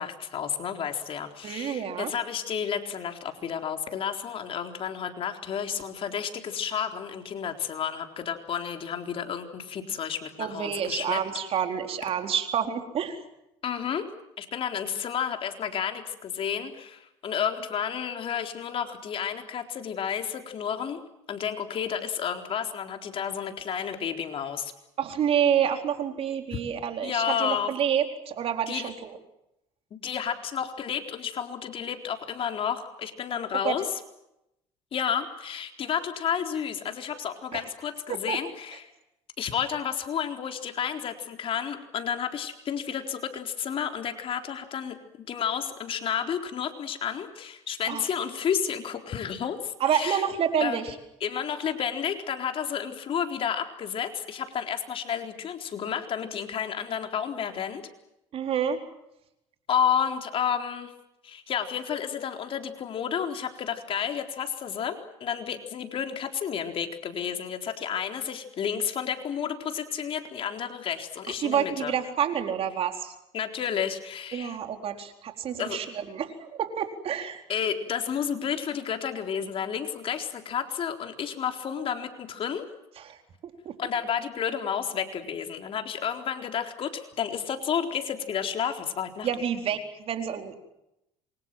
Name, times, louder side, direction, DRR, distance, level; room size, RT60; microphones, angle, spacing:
voice 1, 0.0-11.2 13.6-14.1 14.4-24.7 27.0-27.7 28.7-28.9 29.9-34.0 34.9-38.9 39.4-45.0 45.3-50.2 50.6-50.8 51.2-57.9 59.7-60.9 61.2-71.9 73.3-74.6 75.6-75.8 77.5-82.7 83.8-89.3, left 8 dB, 50° left, 5 dB, 4.0 m, -31 dB
voice 2, 1.4-2.1 10.4-13.2 25.0-29.1 33.6-33.7 37.5-37.6 38.3-38.4 47.9-48.0 49.8-50.9 58.3-58.8 71.4-73.1 74.3-77.4 83.0-83.2 83.7-83.8 89.2-90.6, right 8 dB, 55° right, 5 dB, 4.3 m, -28 dB
27.0 x 24.0 x 7.7 m, 0.85 s
supercardioid pair, 95°, 12 cm